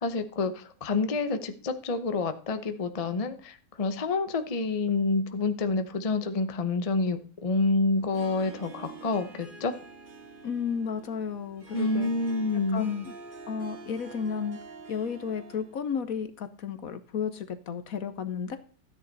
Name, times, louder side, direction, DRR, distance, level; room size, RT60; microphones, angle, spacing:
voice 1, 0.0-9.7 11.7-12.9, left 3 dB, 30° left, 9 dB, 0.6 m, -28 dB
Harp, 7.9-15.8, right 4 dB, 35° right, 1.2 m, -47 dB
voice 2, 10.4-12.1 12.5-13.1 13.5-14.6 14.9-18.6, left 6 dB, 60° left, 11 dB, 1.2 m, -33 dB
13.5 x 9.5 x 4.0 m, 0.38 s
omnidirectional pair, 1.8 m